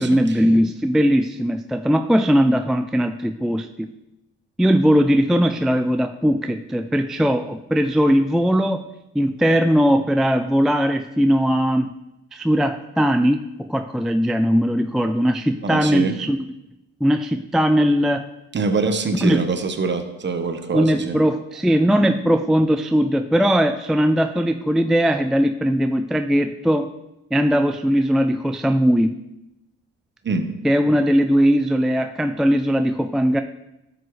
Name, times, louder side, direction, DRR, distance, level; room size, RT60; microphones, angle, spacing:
voice 1, 0.0-3.9 4.6-8.8 9.1-11.9 12.3-16.4 17.0-18.3 19.2-19.4 20.7-26.9 27.3-29.1 30.6-33.4, equal, ahead, 7 dB, 0.3 m, -19 dB
voice 2, 15.6-16.1 18.5-21.2 30.2-30.5, right 4 dB, 35° right, 7 dB, 1.1 m, -24 dB
12.0 x 7.0 x 3.2 m, 0.90 s
cardioid pair, 90°, 30 cm